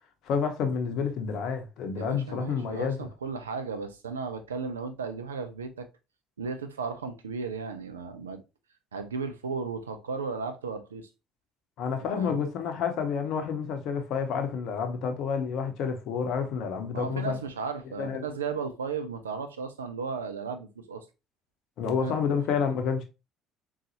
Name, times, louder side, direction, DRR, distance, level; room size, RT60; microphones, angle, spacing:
voice 1, 0.2-3.1 11.8-17.4 18.0-18.2 21.8-23.0, left 6 dB, 65° left, 0.7 m, -29 dB
voice 2, 2.0-5.9 6.4-8.4 8.9-11.1 12.1-12.4 16.8-21.1 22.0-22.1, right 5 dB, 85° right, 0.4 m, -35 dB
3.9 x 2.3 x 2.8 m
hypercardioid pair, 55°, 0 cm